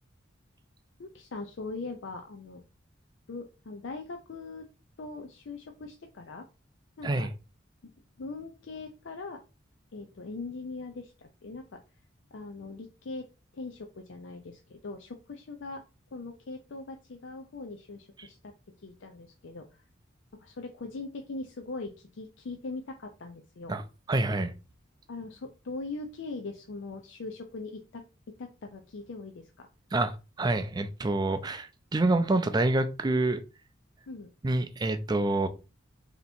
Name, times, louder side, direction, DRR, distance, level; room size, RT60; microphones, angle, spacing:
voice 1, 1.0-2.6 3.3-4.7 5.0-6.5 7.0-7.3 7.8-7.9 8.2-9.4 9.9-11.8 12.3-13.3 13.5-15.8 16.1-18.5 18.8-19.9 20.4-23.8 25.1-29.7 34.1-34.3, left 3 dB, 70° left, 0.5 m, -41 dB
voice 2, 24.1-24.5 29.9-33.4 34.4-35.5, right 2 dB, 20° right, 0.4 m, -27 dB
3.3 x 2.9 x 4.1 m
head